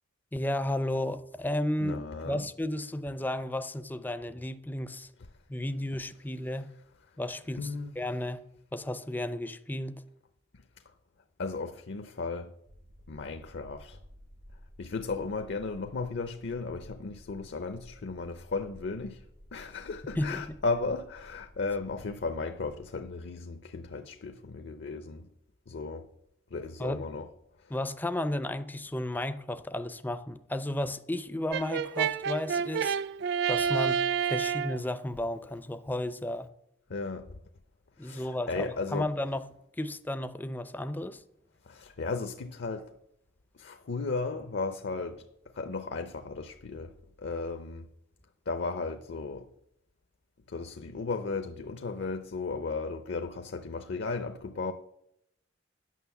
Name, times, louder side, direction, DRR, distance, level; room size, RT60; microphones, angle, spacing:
voice 1, 0.3-2.0 2.2-5.1 5.5-6.7 7.2-7.7 8.0-8.4 8.7-9.9 20.2-20.6 26.8-27.0 27.7-33.0 33.5-34.0 34.3-36.5 38.0-39.4 39.8-41.2, left 1 dB, 10° left, 0.4 m, -33 dB
voice 2, 1.8-2.4 7.6-7.9 11.4-12.5 13.1-14.0 14.8-19.2 19.5-25.3 25.7-26.1 26.5-27.3 36.9-37.3 38.0-39.1 41.7-42.9 43.6-45.2 45.5-46.9 47.2-47.9 48.5-49.5 50.5-54.7, left 3 dB, 65° left, 0.6 m, -35 dB
Car turn signal and engine, 12.7-23.2, equal, 80° right, 3.1 m, -54 dB
Brass instrument, 31.5-34.8, right 7 dB, 60° right, 0.3 m, -29 dB
9.2 x 6.2 x 7.0 m
head